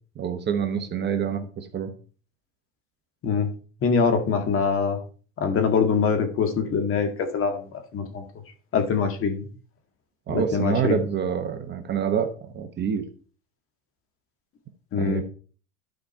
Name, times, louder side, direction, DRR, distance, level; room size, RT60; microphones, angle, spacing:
voice 1, 0.2-1.9 10.3-13.0 15.0-15.2, right 8 dB, 25° right, 7 dB, 1.0 m, -27 dB
voice 2, 3.8-5.0 5.4-8.2 8.7-9.5 10.3-11.0 14.9-15.2, left 5 dB, 30° left, 6 dB, 1.8 m, -24 dB
12.0 x 5.1 x 4.4 m, 0.40 s
supercardioid pair, 125°, 40 cm